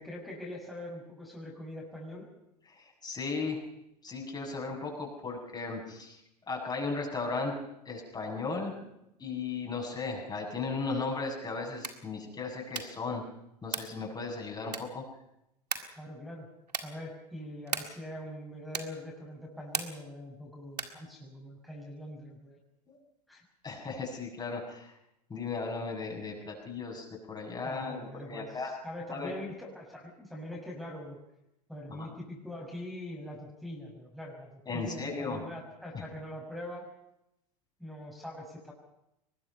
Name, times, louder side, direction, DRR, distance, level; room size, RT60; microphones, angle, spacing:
voice 1, 0.0-2.3 15.9-16.5 16.8-22.6 23.3-23.4 27.6-31.2 31.7-36.8 37.8-38.7, left 1 dB, ahead, -4 dB, 6.6 m, -43 dB
voice 2, 2.7-3.6 4.0-6.2 6.5-7.5 7.9-8.7 9.2-13.2 13.6-15.0 22.9-23.0 23.6-24.9 25.3-28.7 29.1-29.3 31.9-32.1 34.7-35.4 35.9-36.0, left 4 dB, 20° left, 0 dB, 7.4 m, -36 dB
sound 1, 11.7-12.1 12.7-13.1 13.7-14.0 14.7-15.1 15.7-16.0 16.7-17.0 17.7-18.1 18.7-19.1 19.7-20.1 20.7-21.1, right 4 dB, 90° right, 1.9 m, -37 dB
23.5 x 21.0 x 5.7 m, 0.83 s
figure-of-eight pair, 85°, 20 cm